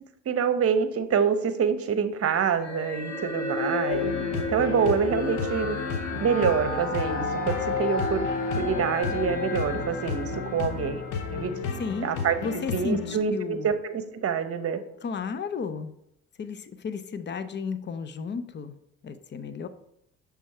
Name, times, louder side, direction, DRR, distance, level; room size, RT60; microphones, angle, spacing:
voice 1, 0.3-5.8 6.2-11.0 11.3-11.7 12.0-12.4 12.7-14.8, right 6 dB, 45° right, 10 dB, 0.9 m, -26 dB
sound 1, 2.6-12.1, left 3 dB, 55° left, 2.0 m, -32 dB
sound 2, 3.9-13.2, left 5 dB, 90° left, 0.8 m, -34 dB
voice 2, 11.8-12.1 12.4-13.7 15.0-15.9 16.4-18.8 19.0-19.7, left 5 dB, 35° left, 11 dB, 0.7 m, -33 dB
6.3 x 3.4 x 5.5 m, 0.76 s
supercardioid pair, 70°, 32 cm